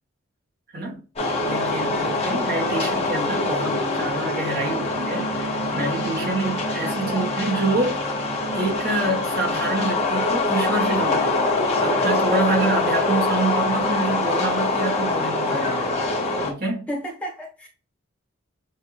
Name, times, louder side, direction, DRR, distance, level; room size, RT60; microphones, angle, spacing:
voice 1, 0.7-1.0 1.4-8.0 8.5-16.0 16.4-16.9, right 2 dB, 45° right, 1.4 m, -27 dB
sound 1, 1.2-16.5, left 2 dB, 30° left, 1.7 m, -24 dB
voice 2, 16.9-17.7, equal, 5° left, 1.2 m, -32 dB
7.6 x 2.7 x 2.4 m
head